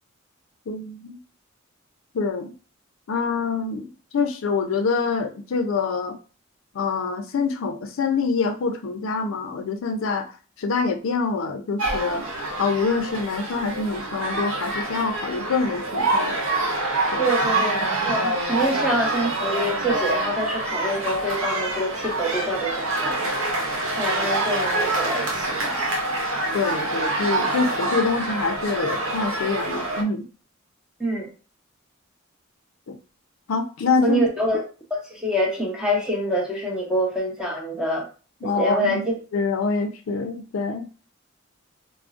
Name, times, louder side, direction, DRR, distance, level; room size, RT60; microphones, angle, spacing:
voice 1, 0.7-1.2 2.1-2.5 3.1-6.2 6.7-10.3 10.6-12.2 12.6-16.3 17.1-17.2 26.5-30.2 32.9-33.0 33.5-34.2 38.4-39.0 39.3-40.9, left 4 dB, 75° left, 6 dB, 0.4 m, -25 dB
sound 1, 11.8-30.0, right 2 dB, 90° right, 0.8 m, -26 dB
voice 2, 17.2-23.3 24.0-25.8 31.0-31.3 34.0-34.6 34.9-38.1 38.4-39.1, equal, 5° right, -1 dB, 0.8 m, -26 dB
3.7 x 2.0 x 2.4 m, 0.35 s
head